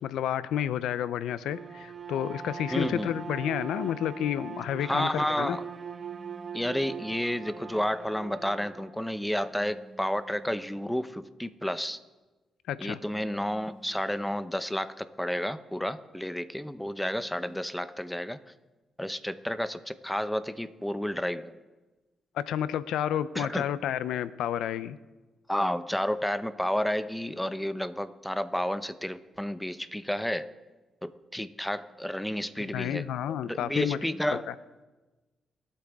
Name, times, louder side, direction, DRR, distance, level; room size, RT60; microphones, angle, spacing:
voice 1, 0.0-5.6 12.7-13.0 22.4-25.0 32.7-34.0 34.3-34.5, left 10 dB, 85° left, 15 dB, 0.5 m, -30 dB
Bowed string instrument, 1.4-9.0, right 7 dB, 50° right, 1.0 m, -41 dB
voice 2, 2.7-3.2 4.8-5.6 6.5-12.0 12.8-18.4 19.0-21.6 23.3-23.6 25.5-30.5 31.0-33.1 33.4-34.5, equal, 5° left, 12 dB, 0.9 m, -31 dB
sound 1, 6.0-7.3 9.5-10.9 13.0-14.5 17.0-17.6, right 3 dB, 30° right, 1.3 m, -52 dB
23.5 x 8.8 x 3.6 m, 1.2 s
supercardioid pair, 65°, 0 cm